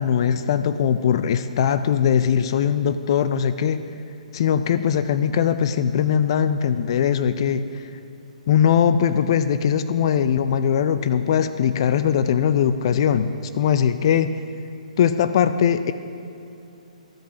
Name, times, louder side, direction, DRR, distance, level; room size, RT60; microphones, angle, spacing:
voice 1, 0.0-3.9 4.3-7.8 8.5-14.4 15.0-15.9, left 8 dB, 40° left, 11 dB, 0.4 m, -20 dB
13.0 x 5.3 x 5.8 m, 2.6 s
figure-of-eight pair, 130°, 4 cm